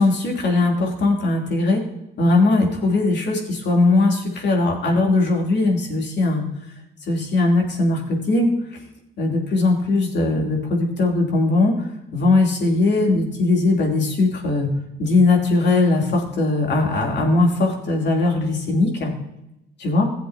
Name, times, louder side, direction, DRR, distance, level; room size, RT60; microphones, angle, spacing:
voice 1, 0.0-1.8 2.2-6.4 7.1-8.5 9.2-14.7 15.0-19.1 19.8-20.1, left 2 dB, 60° left, 0 dB, 3.1 m, -19 dB
16.0 x 7.6 x 2.8 m, 0.86 s
cardioid pair, 90°, 20 cm